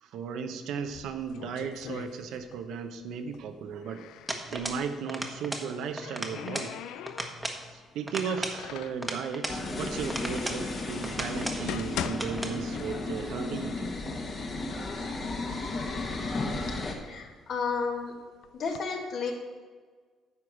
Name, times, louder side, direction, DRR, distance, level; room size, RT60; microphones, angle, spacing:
voice 1, 0.0-4.0 4.5-6.7 7.7-14.0, right 6 dB, 75° right, 7 dB, 0.9 m, -35 dB
sound 1, 0.8-2.7 3.0-4.4 5.5-7.6 8.1-9.1 9.9-10.0 10.6-10.7 11.3-13.3 13.7-13.8 14.5-14.6 14.9-15.6 16.1-17.8 18.4-18.8, left 10 dB, 80° left, 0.4 m, -41 dB
sound 2, 4.3-4.8 5.1-5.7 6.0-6.7 7.1-7.6 8.1-9.6 10.1-10.6 11.0-11.6 12.0-12.6, right 1 dB, 5° right, 1.2 m, -36 dB
sound 3, 9.5-17.0, left 2 dB, 40° left, 1.5 m, -34 dB
voice 2, 16.9-18.1 18.5-19.3, left 5 dB, 60° left, 2 dB, 1.8 m, -32 dB
9.7 x 4.8 x 7.3 m, 1.5 s
cardioid pair, 105°, 0 cm